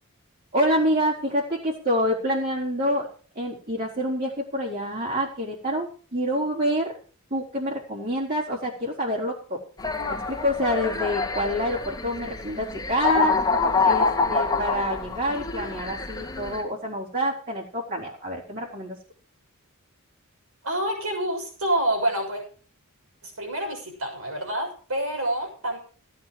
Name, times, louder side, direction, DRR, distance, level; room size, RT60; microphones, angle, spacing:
voice 1, 0.5-3.1 3.4-6.9 7.3-9.6 10.1-13.4 13.8-19.0, equal, 45° right, -5 dB, 3.9 m, -27 dB
sound 1, 9.8-16.6, left 4 dB, 15° left, 2.1 m, -26 dB
voice 2, 20.6-22.4 23.2-25.8, right 1 dB, 70° right, 2 dB, 6.5 m, -27 dB
15.5 x 9.5 x 4.9 m, 0.40 s
head